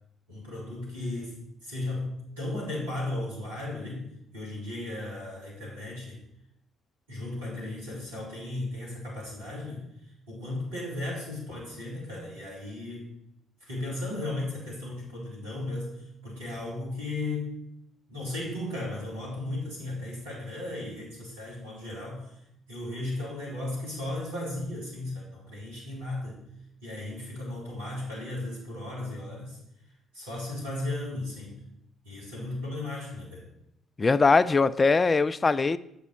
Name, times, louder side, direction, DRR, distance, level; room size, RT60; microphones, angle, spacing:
voice 1, 0.3-4.1 4.3-6.2 7.1-9.9 10.3-13.1 13.6-15.9 16.2-17.5 18.1-22.3 22.7-26.4 26.8-29.6 30.1-31.6 32.0-33.5, left 2 dB, 85° right, 3.3 m, -35 dB
voice 2, 34.0-35.8, left 4 dB, 30° left, 0.3 m, -21 dB
8.1 x 5.9 x 4.4 m
hypercardioid pair, 50°, 0 cm